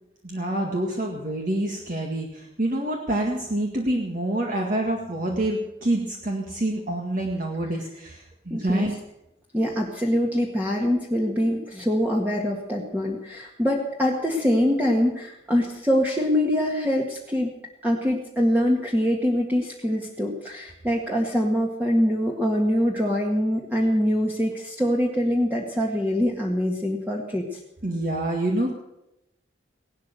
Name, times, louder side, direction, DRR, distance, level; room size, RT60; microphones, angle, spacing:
voice 1, 0.2-8.9 27.8-28.8, right 1 dB, 45° right, 1 dB, 1.9 m, -27 dB
voice 2, 8.5-8.9 9.5-17.5 17.8-27.6, equal, 10° right, -1 dB, 1.8 m, -24 dB
17.5 x 12.0 x 6.8 m, 0.87 s
head